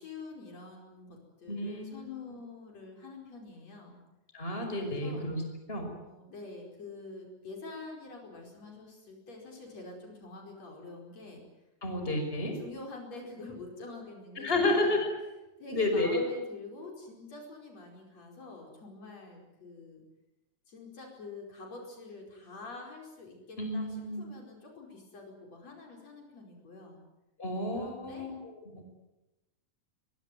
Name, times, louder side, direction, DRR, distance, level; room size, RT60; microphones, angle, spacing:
voice 1, 0.0-4.0 4.8-5.3 6.0-11.4 12.2-15.0 15.6-20.0 20.7-27.0 27.8-28.3, left 3 dB, 60° left, 1 dB, 6.0 m, -46 dB
voice 2, 1.5-2.0 4.3-5.4 5.7-5.9 11.8-12.6 14.4-15.1 15.7-16.3 23.6-24.2 27.4-28.9, left 2 dB, 15° left, 4 dB, 5.8 m, -31 dB
23.0 x 23.0 x 9.3 m, 0.97 s
omnidirectional pair, 3.4 m